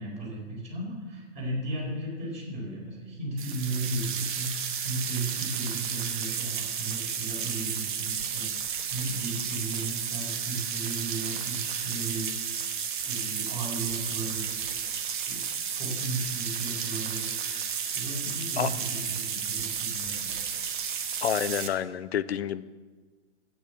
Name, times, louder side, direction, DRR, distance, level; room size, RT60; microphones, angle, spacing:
voice 1, 0.0-12.3 12.5-12.6 13.0-14.5 15.3-15.4 15.7-17.3 17.9-20.4, right 2 dB, 20° right, -2 dB, 4.4 m, -35 dB
sound 1, 3.4-21.7, right 7 dB, 40° right, 1.3 m, -32 dB
voice 2, 21.2-22.7, left 9 dB, 55° left, 14 dB, 0.7 m, -28 dB
12.5 x 9.0 x 7.1 m, 1.4 s
figure-of-eight pair, 130°, 37 cm